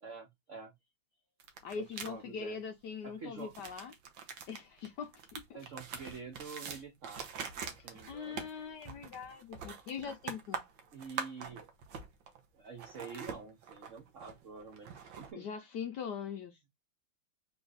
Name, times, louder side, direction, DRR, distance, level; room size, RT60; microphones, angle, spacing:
voice 1, 0.0-0.7 1.8-2.6 3.0-3.5 5.5-7.3 7.8-8.5 10.9-11.7 12.5-15.5, right 5 dB, 85° right, 0.6 m, -47 dB
sound 1, 1.4-2.1 3.4-12.4 12.7-15.3, right 6 dB, 65° right, 1.5 m, -44 dB
voice 2, 1.6-3.9 4.5-5.4 7.8-10.6 15.4-16.6, left 6 dB, 75° left, 1.0 m, -42 dB
3.9 x 3.4 x 3.9 m
omnidirectional pair, 2.4 m